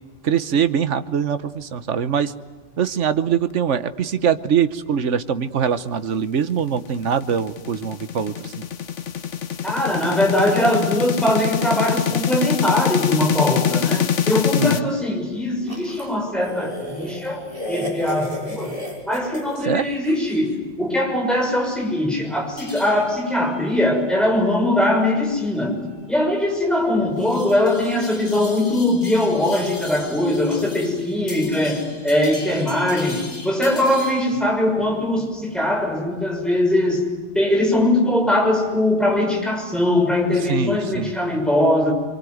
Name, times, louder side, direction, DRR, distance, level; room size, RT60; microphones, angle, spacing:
voice 1, 0.2-2.3 2.8-8.5 14.6-14.9 19.7-19.9 40.5-41.1, right 7 dB, 85° right, 12 dB, 1.4 m, -22 dB
sound 1, 6.7-14.8, left 8 dB, 85° left, 1.4 m, -24 dB
voice 2, 9.6-18.8 19.1-25.8 26.1-41.9, left 1 dB, ahead, 0 dB, 6.3 m, -21 dB
sound 2, 15.7-20.4, equal, 30° right, 6.3 m, -33 dB
sound 3, 22.6-34.4, left 2 dB, 45° left, 7.6 m, -40 dB
27.0 x 23.5 x 9.4 m, 1.3 s
omnidirectional pair, 1.2 m